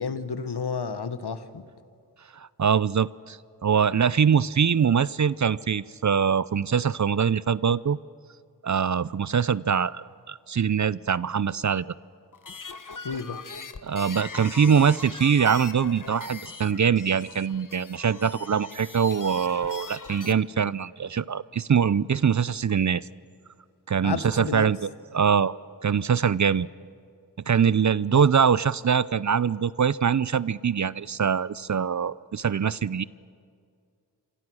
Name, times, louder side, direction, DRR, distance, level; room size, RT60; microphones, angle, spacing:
voice 1, 0.0-1.7 13.0-13.4 24.0-24.7 28.1-28.3, left 5 dB, 70° left, 11 dB, 1.4 m, -31 dB
voice 2, 2.3-8.0 8.6-11.8 13.8-23.1 23.9-25.5 25.8-26.7 27.5-33.0, right 7 dB, 45° right, 20 dB, 0.5 m, -23 dB
sound 1, 12.3-20.3, left 5 dB, 50° left, 1.2 m, -41 dB
26.5 x 25.5 x 6.3 m, 2.2 s
cardioid pair, 45°, 41 cm